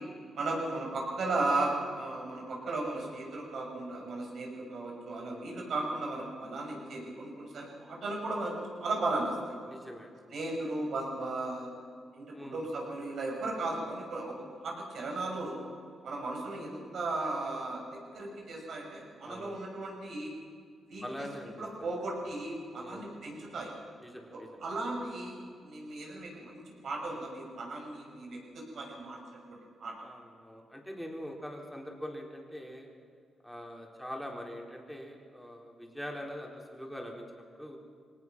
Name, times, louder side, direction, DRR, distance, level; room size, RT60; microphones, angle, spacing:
voice 1, 0.3-9.5 10.3-11.7 12.1-15.6 16.0-20.3 20.9-21.3 21.6-23.7 24.3-29.2 29.5-29.9, right 2 dB, 65° right, 0 dB, 6.7 m, -36 dB
voice 2, 5.1-5.4 9.7-10.1 12.3-12.6 19.3-19.7 21.0-21.6 22.8-23.1 24.0-24.6 30.0-32.9 33.4-37.8, equal, ahead, 0 dB, 4.3 m, -43 dB
24.0 x 18.5 x 6.2 m, 2.2 s
cardioid pair, 85°, 0 cm